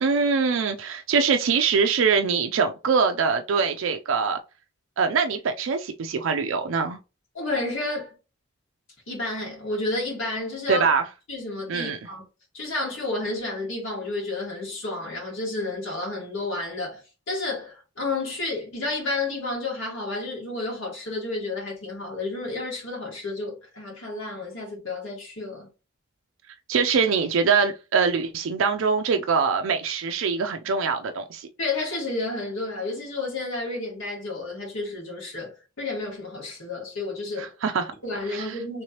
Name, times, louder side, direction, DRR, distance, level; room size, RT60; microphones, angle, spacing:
voice 1, 0.0-4.4 5.0-7.0 10.7-11.0 11.7-12.0 26.7-31.5 37.4-37.9 38.3-38.5, right 5 dB, 70° right, 0.4 m, -23 dB
voice 2, 7.3-8.1 9.1-10.9 11.3-12.2 12.5-25.7 31.6-37.5 38.0-38.8, left 2 dB, 70° left, 1.7 m, -31 dB
3.3 x 3.1 x 2.8 m
head